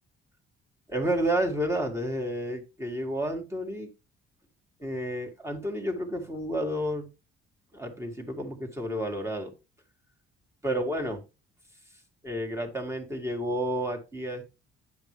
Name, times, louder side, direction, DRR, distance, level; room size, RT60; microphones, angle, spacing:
voice 1, 0.9-3.9 4.8-7.1 7.7-9.5 10.6-11.2 12.2-14.5, right 1 dB, 15° right, 3 dB, 2.2 m, -30 dB
10.0 x 5.8 x 3.3 m, 0.28 s
cardioid pair, 120°, 21 cm